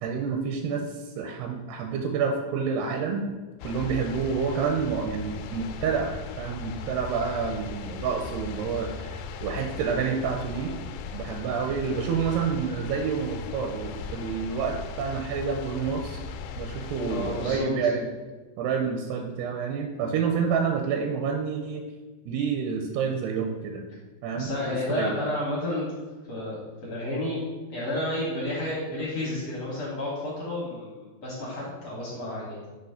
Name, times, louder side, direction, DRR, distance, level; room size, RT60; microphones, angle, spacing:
voice 1, 0.0-3.3 3.6-10.7 11.1-16.2 16.6-18.1 18.6-21.8 22.3-23.8 24.2-25.2, right 6 dB, 80° right, 3 dB, 2.5 m, -28 dB
sound 1, 3.6-17.6, left 5 dB, 85° left, 2.6 m, -38 dB
voice 2, 17.1-17.7 24.3-25.9 26.3-32.7, left 1 dB, 70° left, -6 dB, 1.5 m, -31 dB
7.8 x 3.0 x 5.7 m, 1.3 s
omnidirectional pair, 4.9 m